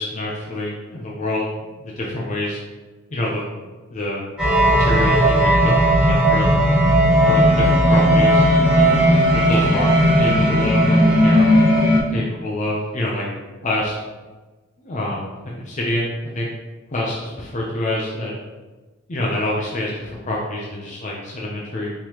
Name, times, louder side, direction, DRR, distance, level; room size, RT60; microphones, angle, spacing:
voice 1, 0.0-1.5 1.8-2.6 3.1-3.6 3.9-4.2 4.7-5.7 6.1-6.5 7.2-11.5 12.1-13.3 13.6-14.0 14.8-15.3 15.7-16.5 16.9-18.3 19.1-21.9, left 1 dB, 40° left, -3 dB, 0.6 m, -26 dB
sound 1, 4.4-12.0, equal, 5° right, 1.2 m, -15 dB
4.7 x 3.7 x 2.9 m, 1.2 s
head